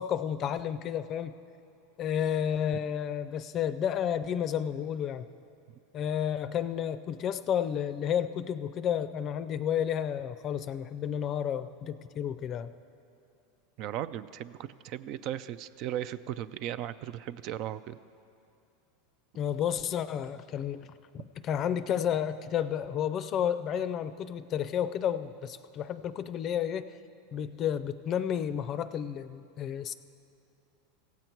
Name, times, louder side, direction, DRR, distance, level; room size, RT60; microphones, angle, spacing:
voice 1, 0.0-1.3 2.0-5.3 5.9-12.7 19.3-20.9 21.1-26.9 27.3-30.0, left 9 dB, 40° left, 14 dB, 0.4 m, -31 dB
voice 2, 13.8-18.0, right 11 dB, 55° right, 14 dB, 0.3 m, -37 dB
15.5 x 7.9 x 4.5 m, 2.7 s
hypercardioid pair, 110°, 0 cm